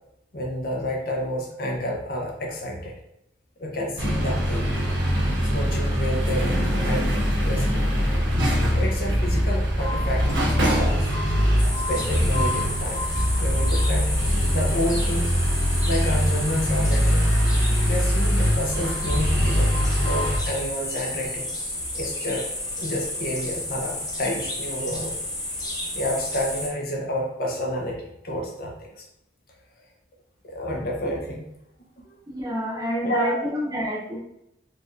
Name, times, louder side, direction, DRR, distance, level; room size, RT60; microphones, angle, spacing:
voice 1, 0.3-2.9 3.6-4.7 5.4-7.2 7.4-7.9 8.7-10.3 10.6-11.1 11.9-13.1 13.4-14.1 14.5-15.3 15.8-17.3 17.9-21.5 21.9-22.5 22.8-25.2 25.9-29.0 30.4-31.5 32.0-32.2 33.0-33.4, equal, 50° left, -1 dB, 0.6 m, -29 dB
sound 1, 4.0-20.4, equal, 75° right, 1.2 m, -22 dB
sound 2, 11.6-26.7, left 1 dB, 20° left, 0.8 m, -32 dB
voice 2, 32.3-34.2, equal, 20° right, -3 dB, 0.8 m, -28 dB
4.3 x 3.0 x 2.6 m, 0.81 s
head